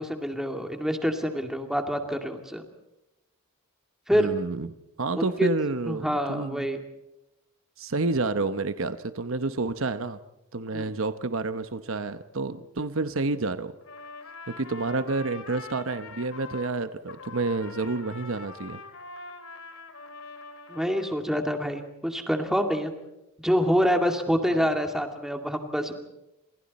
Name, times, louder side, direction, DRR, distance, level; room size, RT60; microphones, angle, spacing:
voice 1, 0.0-2.7 4.1-4.3 5.2-5.5 5.9-6.8 10.7-10.9 20.7-22.9 23.4-25.9, equal, ahead, 4 dB, 2.4 m, -26 dB
voice 2, 4.1-4.7 5.0-6.7 7.8-10.2 10.5-13.7 14.5-18.8, right 3 dB, 65° right, 11 dB, 1.0 m, -29 dB
Trumpet, 13.8-16.8 17.1-21.2, left 3 dB, 70° left, 2.9 m, -43 dB
28.5 x 28.0 x 4.3 m, 0.92 s
head